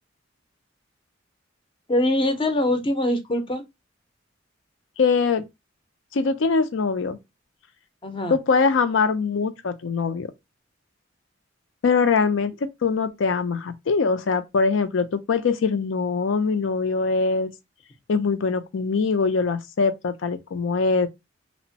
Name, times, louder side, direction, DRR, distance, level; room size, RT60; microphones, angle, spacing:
voice 1, 1.9-3.6 8.0-8.4, left 1 dB, 25° left, 0.5 m, -23 dB
voice 2, 5.0-5.4 6.1-7.2 8.3-10.3 11.8-17.5 18.1-21.1, left 4 dB, 80° left, 0.5 m, -22 dB
3.0 x 2.1 x 2.6 m
head